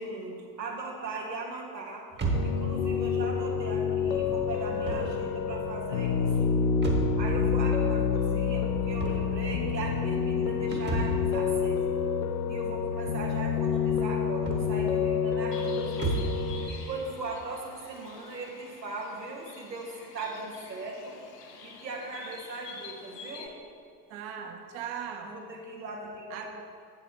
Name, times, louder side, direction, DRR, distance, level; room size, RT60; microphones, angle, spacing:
voice 1, 0.0-2.1 2.4-6.6 7.2-12.0 12.5-16.1 16.7-21.2 21.6-23.5 25.2-26.5, right 3 dB, 85° right, -1 dB, 1.2 m, -39 dB
sound 1, 2.1-16.5, right 3 dB, 20° right, 1.1 m, -36 dB
Piano, 2.3-16.7, left 6 dB, 55° left, 0.7 m, -28 dB
Bird, 15.5-23.5, left 5 dB, 70° left, 1.0 m, -47 dB
voice 2, 24.1-25.4 26.3-26.5, right 8 dB, 50° right, 4 dB, 1.0 m, -38 dB
8.0 x 7.8 x 3.1 m, 2.3 s
figure-of-eight pair, 70°, 50 cm